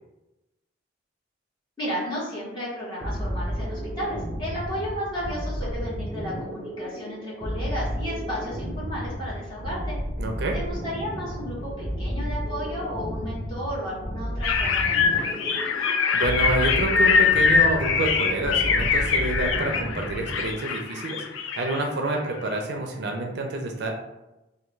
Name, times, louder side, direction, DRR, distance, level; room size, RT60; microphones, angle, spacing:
voice 1, 1.8-10.0 10.5-15.7, equal, 25° left, -7 dB, 1.2 m, -33 dB
sound 1, 3.0-20.6, equal, 10° right, 0.6 m, -32 dB
voice 2, 10.2-10.6 16.1-23.9, right 2 dB, 60° right, 2 dB, 0.4 m, -28 dB
sound 2, 14.4-22.6, left 5 dB, 90° left, 0.4 m, -23 dB
3.4 x 2.2 x 3.1 m, 0.98 s
head